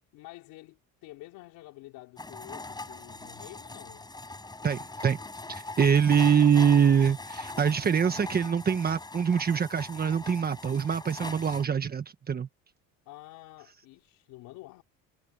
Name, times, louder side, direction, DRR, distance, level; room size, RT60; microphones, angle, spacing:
voice 1, 0.1-4.1 6.0-6.7 13.1-14.8, left 19 dB, 75° left, 4.2 m, -49 dB
sound 1, 2.2-11.7, left 2 dB, 10° left, 6.5 m, -41 dB
voice 2, 4.6-5.2 5.5-12.5, right 7 dB, 25° right, 1.3 m, -24 dB
cardioid pair, 120°, 34 cm